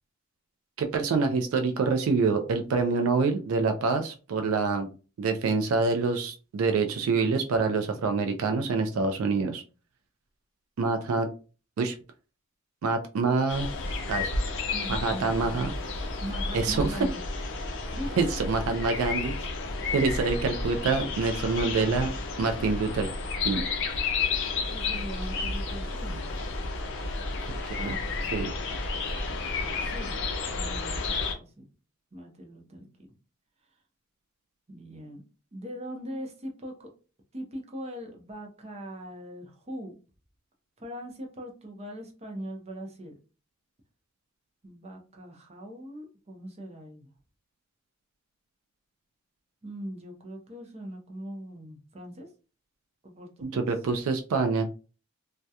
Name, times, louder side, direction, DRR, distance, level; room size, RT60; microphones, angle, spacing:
voice 1, 0.8-4.9 5.2-9.6 10.8-11.3 11.8-12.0 12.8-13.7 14.1-14.3 14.9-15.7 16.5-17.1 18.2-19.5 19.9-22.1 22.4-23.1 23.4-23.6 27.8-28.0 28.3-28.5 53.4-54.6, right 4 dB, 75° right, 6 dB, 0.4 m, -26 dB
sound 1, 13.5-31.3, left 3 dB, 60° left, 0.5 m, -31 dB
voice 2, 14.7-15.6 16.2-17.2 17.5-18.4 24.7-26.3 27.8-28.1 29.8-30.2 30.5-31.6 32.1-33.1 34.7-35.2 35.5-36.9 37.3-39.9 40.8-43.1 44.6-47.1 49.6-52.3 53.0-53.6, equal, 30° right, 2 dB, 0.6 m, -41 dB
2.3 x 2.1 x 2.7 m, 0.35 s
head